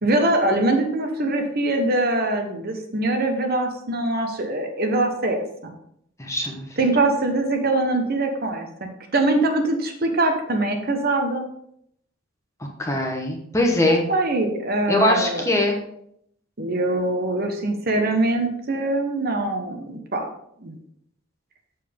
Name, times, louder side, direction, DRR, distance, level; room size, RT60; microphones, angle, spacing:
voice 1, 0.0-5.7 6.8-11.4 13.8-15.4 16.6-20.3 20.6-20.8, right 2 dB, 45° right, 4 dB, 1.1 m, -23 dB
voice 2, 6.2-6.7 12.8-14.0 14.9-15.8, left 1 dB, 15° left, 1 dB, 1.1 m, -21 dB
7.1 x 7.0 x 3.6 m, 0.71 s
head